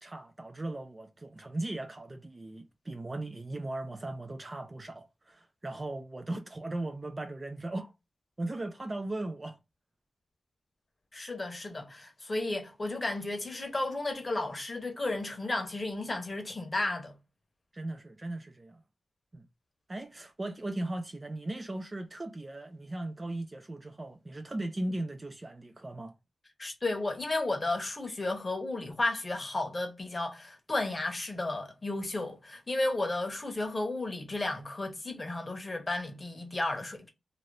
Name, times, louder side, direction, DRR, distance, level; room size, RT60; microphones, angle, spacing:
voice 1, 0.0-7.9 8.4-9.6 17.7-18.8 19.3-19.5 19.9-26.1, right 2 dB, 25° right, 0.3 m, -38 dB
voice 2, 11.1-17.2 26.6-37.1, left 2 dB, 25° left, 0.8 m, -33 dB
2.7 x 2.6 x 3.1 m
wide cardioid pair, 140°, 0 cm